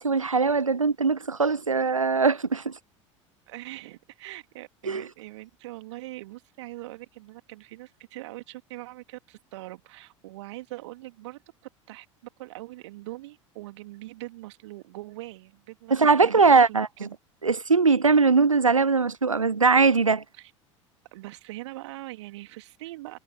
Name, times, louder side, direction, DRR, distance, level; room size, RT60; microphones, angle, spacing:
voice 1, 0.0-2.7 4.9-5.0 15.9-17.1 17.4-20.2, right 4 dB, 85° right, 0.5 m, -21 dB
voice 2, 3.5-11.4 11.9-12.1 12.4-17.1 20.3-20.5 21.1-23.2, right 18 dB, 60° right, 2.5 m, -42 dB
figure-of-eight pair, 70°, 16 cm